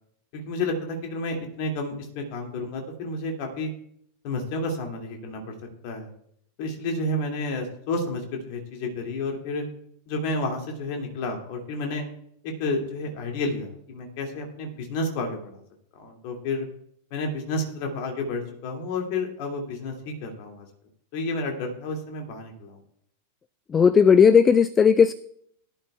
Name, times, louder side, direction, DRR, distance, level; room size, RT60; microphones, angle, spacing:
voice 1, 0.3-3.7 4.2-5.4 5.8-6.1 6.6-9.6 10.1-12.1 12.6-15.6 16.0-16.7 17.1-19.9 20.2-20.7 21.1-22.8, left 2 dB, 45° left, 2 dB, 2.4 m, -30 dB
voice 2, 23.7-25.1, left 6 dB, 20° left, 15 dB, 0.4 m, -16 dB
17.0 x 11.5 x 2.3 m, 0.69 s
figure-of-eight pair, 90°, 0 cm